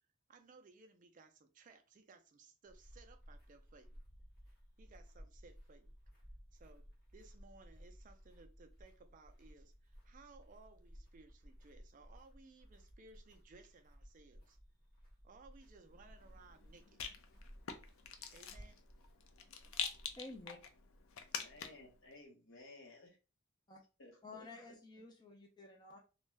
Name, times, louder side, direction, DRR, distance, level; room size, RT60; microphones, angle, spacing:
voice 1, 0.3-4.0 4.8-5.9 6.5-6.8 7.1-14.6 15.2-17.0 18.3-18.8, right 3 dB, 40° right, 6 dB, 0.3 m, -61 dB
sound 1, 2.7-20.4, equal, 50° left, 1.3 m, -59 dB
Rattle, 15.8-21.9, left 7 dB, 80° left, 0.4 m, -46 dB
voice 2, 20.2-20.6 23.7-23.8 24.2-26.0, left 2 dB, 20° left, 1 dB, 0.5 m, -52 dB
voice 3, 21.3-23.2 24.0-24.8, left 2 dB, 65° left, 1 dB, 1.0 m, -57 dB
2.5 x 2.2 x 3.1 m, 0.31 s
head